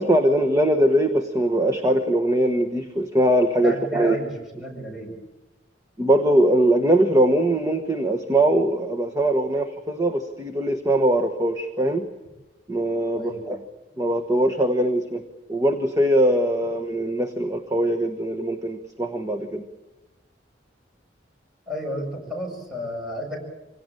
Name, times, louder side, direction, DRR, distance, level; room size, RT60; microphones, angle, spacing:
voice 1, 0.0-4.2 6.0-12.1 12.7-13.6 14.0-15.2 15.5-19.6, right 1 dB, 20° right, 4 dB, 1.3 m, -21 dB
voice 2, 3.6-4.3 4.6-5.1 13.1-13.5 21.7-23.4, equal, ahead, -1 dB, 6.9 m, -32 dB
25.5 x 17.5 x 9.1 m, 1.1 s
head